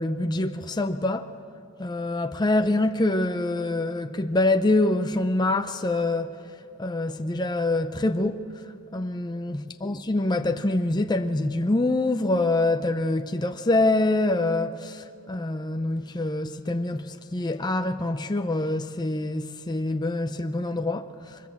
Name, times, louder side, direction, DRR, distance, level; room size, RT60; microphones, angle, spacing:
voice 1, 0.0-1.3 1.8-6.3 6.8-8.5 8.9-21.4, left 2 dB, 20° left, 0.6 m, -25 dB
23.5 x 21.5 x 7.2 m
head